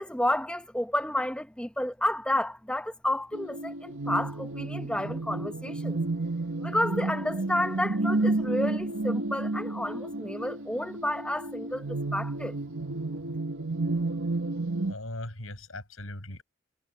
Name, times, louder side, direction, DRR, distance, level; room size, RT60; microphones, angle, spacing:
voice 1, 0.0-6.0 6.6-12.5, left 1 dB, 5° left, 0.9 m, -31 dB
sound 1, 3.3-14.9, right 2 dB, 90° right, 1.8 m, -31 dB
voice 2, 14.9-16.4, left 1 dB, 85° left, 7.2 m, -39 dB
head